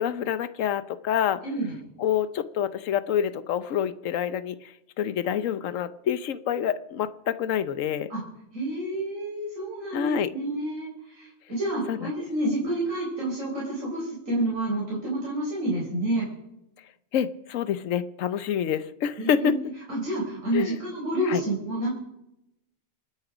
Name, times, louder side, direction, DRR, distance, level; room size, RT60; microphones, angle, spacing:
voice 1, 0.0-1.4 2.0-8.1 9.9-10.3 11.9-12.1 12.6-12.7 17.1-19.5 20.5-20.8 21.3-21.4, left 9 dB, 85° left, 13 dB, 1.1 m, -27 dB
voice 2, 1.4-1.7 8.1-8.2 8.5-16.2 19.2-19.6 19.9-21.9, right 1 dB, 90° right, -5 dB, 4.7 m, -29 dB
27.5 x 9.8 x 5.0 m, 0.84 s
omnidirectional pair, 1.3 m